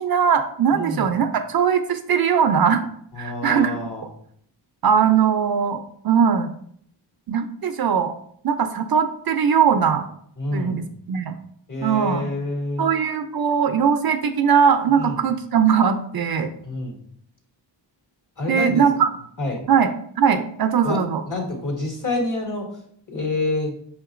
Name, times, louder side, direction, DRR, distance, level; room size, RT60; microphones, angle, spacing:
voice 1, 0.0-2.9 3.2-3.8 4.8-6.5 7.3-8.1 8.4-10.1 10.5-11.3 11.8-12.2 12.8-16.5 18.5-19.1 19.7-21.2, right 7 dB, 55° right, 8 dB, 0.5 m, -20 dB
voice 2, 0.7-1.2 3.1-4.1 10.4-10.8 11.7-12.9 15.0-15.2 16.6-17.0 18.4-18.8 19.4-19.6 20.8-22.8 23.1-23.7, left 2 dB, 45° left, 0 dB, 1.6 m, -27 dB
5.8 x 2.8 x 2.5 m, 0.65 s
cardioid pair, 55°, 45 cm